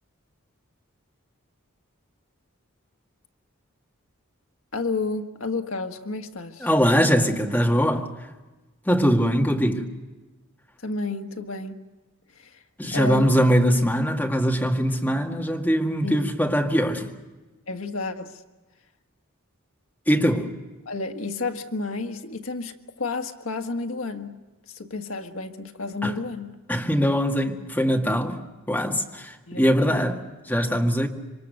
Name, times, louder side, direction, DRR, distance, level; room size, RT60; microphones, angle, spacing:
voice 1, 4.7-6.7 10.8-11.8 12.4-12.6 12.9-13.4 16.0-16.3 17.7-18.3 20.8-24.4 24.7-26.6 29.5-30.0, left 3 dB, 70° left, 1.6 m, -31 dB
voice 2, 6.6-8.1 8.9-9.9 12.8-17.1 20.1-20.5 26.0-26.1 26.7-28.4 28.7-30.2 30.5-31.1, equal, 10° left, 2.0 m, -22 dB
27.0 x 24.5 x 6.6 m
head